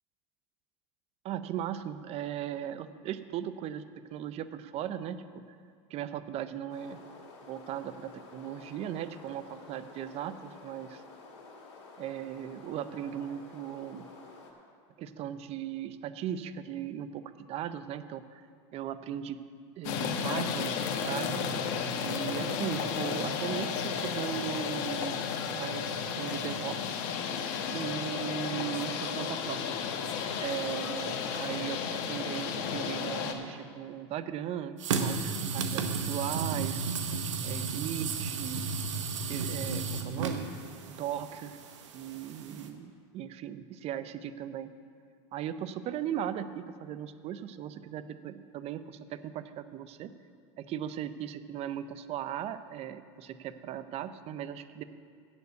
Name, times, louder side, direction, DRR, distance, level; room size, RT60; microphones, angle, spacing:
voice 1, 1.2-3.8 4.1-5.4 5.9-7.0 7.4-11.0 12.0-14.1 15.0-17.2 17.5-18.4 18.7-19.4 19.8-20.8 21.0-21.4 22.0-25.2 25.5-26.8 27.7-29.8 30.4-36.9 37.4-38.7 39.3-40.5 40.9-41.6 41.9-44.7 45.3-50.1 50.6-54.8, right 10 dB, 45° right, 13 dB, 0.6 m, -38 dB
sound 1, 6.7-14.5, left 3 dB, 80° left, 1.9 m, -51 dB
sound 2, 19.8-33.3, left 6 dB, 60° left, 1.0 m, -33 dB
sound 3, 34.8-42.7, right 5 dB, 85° right, 0.9 m, -33 dB
8.0 x 7.0 x 8.1 m, 2.1 s
supercardioid pair, 105°, 15 cm